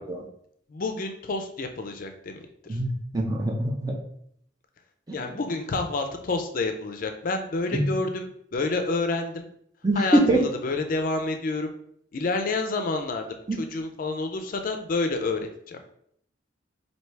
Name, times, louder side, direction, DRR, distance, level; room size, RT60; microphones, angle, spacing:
voice 1, 0.7-2.8 5.1-9.5 9.9-11.7 12.1-15.8, left 3 dB, 50° left, 6 dB, 0.4 m, -29 dB
voice 2, 2.7-3.9 7.7-7.8 9.8-10.4 13.5-13.7, right 1 dB, 20° right, 1 dB, 0.6 m, -23 dB
4.4 x 2.7 x 3.3 m, 0.69 s
head